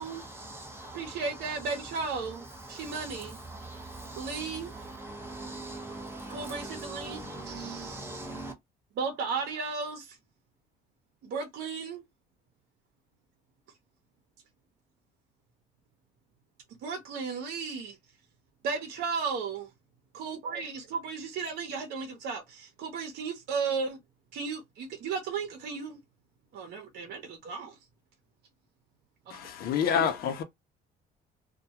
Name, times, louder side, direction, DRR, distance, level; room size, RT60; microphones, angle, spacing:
voice 1, 0.0-1.9 2.2-8.5, right 2 dB, 15° right, 1.0 m, -42 dB
voice 2, 0.9-3.4 4.2-4.7 6.3-7.2 7.4-8.3 9.0-10.2 11.2-12.0 16.8-18.0 18.6-19.7 20.1-24.0 24.3-26.0 26.5-27.7 29.9-30.1, right 5 dB, 75° right, 0.8 m, -35 dB
voice 3, 29.3-30.4, left 8 dB, 65° left, 0.5 m, -28 dB
2.2 x 2.2 x 2.8 m
cardioid pair, 110°, 17 cm